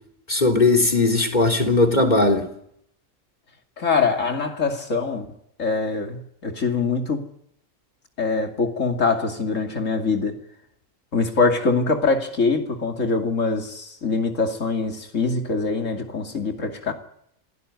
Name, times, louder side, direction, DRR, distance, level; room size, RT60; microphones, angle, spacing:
voice 1, 0.3-2.4, left 2 dB, 35° left, 3.4 m, -18 dB
voice 2, 3.8-5.3 5.6-7.2 8.2-10.4 11.1-16.9, left 4 dB, 75° left, 3.0 m, -23 dB
26.5 x 17.5 x 9.7 m
omnidirectional pair, 1.3 m